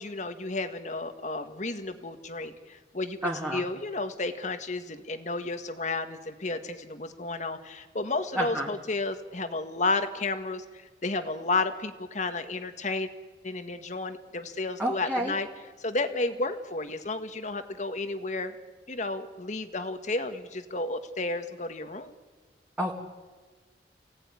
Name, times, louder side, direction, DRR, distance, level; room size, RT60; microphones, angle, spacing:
voice 1, 0.0-13.1 13.4-15.5 15.8-18.5 18.9-22.1, left 3 dB, 45° left, 8 dB, 1.8 m, -32 dB
voice 2, 3.2-3.6 8.3-8.7 14.8-15.3 22.8-23.0, right 1 dB, 10° right, -3 dB, 2.4 m, -29 dB
29.5 x 17.5 x 9.7 m, 1.3 s
head